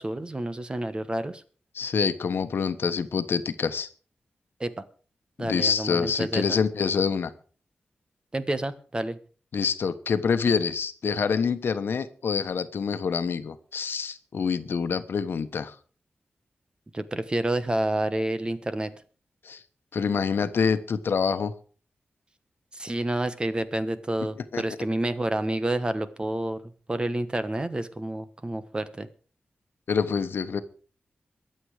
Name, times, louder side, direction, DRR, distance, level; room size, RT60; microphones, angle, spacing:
voice 1, 0.0-1.4 4.6-4.7 5.4-6.6 8.3-9.2 16.9-18.9 22.7-26.6 26.9-29.1, right 1 dB, 25° right, 12 dB, 1.3 m, -29 dB
voice 2, 1.7-3.9 5.4-7.3 9.5-15.7 19.4-19.6 19.9-21.5 24.5-24.6 29.9-30.6, left 6 dB, 80° left, 11 dB, 1.2 m, -26 dB
22.5 x 7.9 x 4.9 m, 0.40 s
wide cardioid pair, 110°, 4 cm